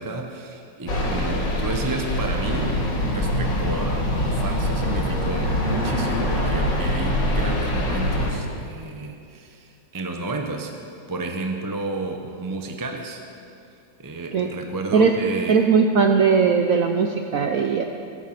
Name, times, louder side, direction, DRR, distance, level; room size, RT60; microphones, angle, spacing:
voice 1, 0.0-10.8 11.1-13.2 14.0-15.6, right 2 dB, 20° right, 3 dB, 0.5 m, -31 dB
sound 1, 0.9-8.3, left 1 dB, 75° left, 3.1 m, -24 dB
voice 2, 15.5-17.8, right 5 dB, 65° right, 4 dB, 0.9 m, -19 dB
19.5 x 8.1 x 5.9 m, 2.4 s
omnidirectional pair, 2.0 m